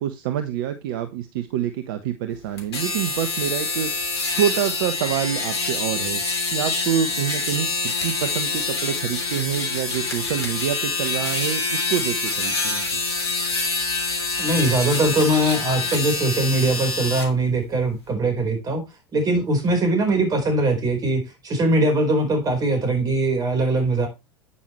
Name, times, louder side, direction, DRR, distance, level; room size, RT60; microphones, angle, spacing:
voice 1, 0.0-3.9 4.4-12.8, right 9 dB, 55° right, 1.2 m, -27 dB
sound 1, 2.6-17.3, left 3 dB, 75° left, 3.2 m, -26 dB
voice 2, 14.4-18.8 19.1-24.1, right 2 dB, 30° right, 4.5 m, -21 dB
9.8 x 9.4 x 3.2 m
figure-of-eight pair, 85°, 14 cm